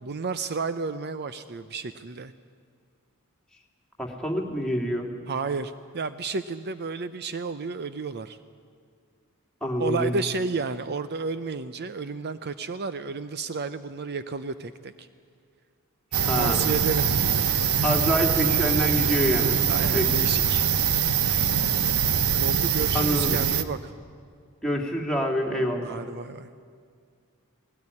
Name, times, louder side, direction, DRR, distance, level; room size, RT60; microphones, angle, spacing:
voice 1, 0.0-2.3 5.3-8.4 9.8-15.1 16.4-17.1 19.7-20.7 21.2-21.5 22.4-23.9 25.8-26.5, right 4 dB, 50° right, 12 dB, 0.6 m, -32 dB
voice 2, 4.0-5.1 9.6-10.2 16.1-16.7 17.8-19.6 19.9-20.1 22.9-23.4 24.6-26.0, equal, 5° left, 0 dB, 2.5 m, -26 dB
sound 1, 16.1-23.6, right 7 dB, 80° right, 1.0 m, -23 dB
20.0 x 17.5 x 9.8 m, 2.1 s
head